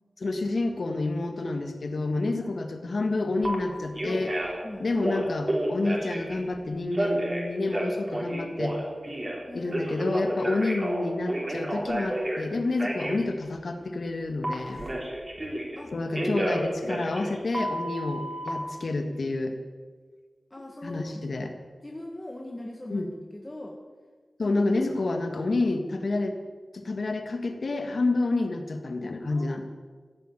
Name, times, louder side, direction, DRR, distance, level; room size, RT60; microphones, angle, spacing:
voice 1, 0.2-4.4 4.8-8.8 9.5-14.9 15.4-15.5 15.9-19.5 20.8-21.5 22.9-23.1 24.4-26.4 26.7-29.6, left 2 dB, 70° left, 6 dB, 1.8 m, -29 dB
Telephone, 3.4-3.5 3.9-4.6 5.0-6.3 6.9-9.4 9.7-12.4 12.8-13.2 14.4-15.8 16.1-18.5, right 1 dB, 35° right, 3.8 m, -31 dB
voice 2, 9.5-10.0 15.7-16.3 20.5-21.2 21.8-23.0 23.3-23.8 24.4-24.6 29.3-29.6, left 1 dB, 25° left, 1 dB, 1.6 m, -41 dB
15.5 x 8.7 x 9.1 m, 1.5 s
wide cardioid pair, 75°, 0 cm